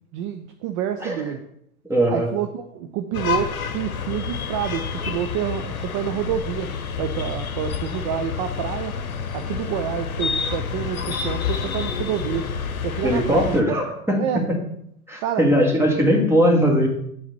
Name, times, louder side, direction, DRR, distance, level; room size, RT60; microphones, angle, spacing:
voice 1, 0.1-1.4 2.1-6.7 7.0-9.0 9.3-12.5 12.8-13.8 14.2-14.4 15.2-15.5, right 9 dB, 25° right, 7 dB, 0.3 m, -28 dB
voice 2, 1.9-2.3 13.0-14.6 15.1-16.9, equal, 5° right, 1 dB, 1.7 m, -19 dB
sound 1, 3.1-13.6, left 6 dB, 70° left, 0.9 m, -29 dB
8.4 x 4.0 x 6.7 m, 0.72 s
figure-of-eight pair, 90°, 43 cm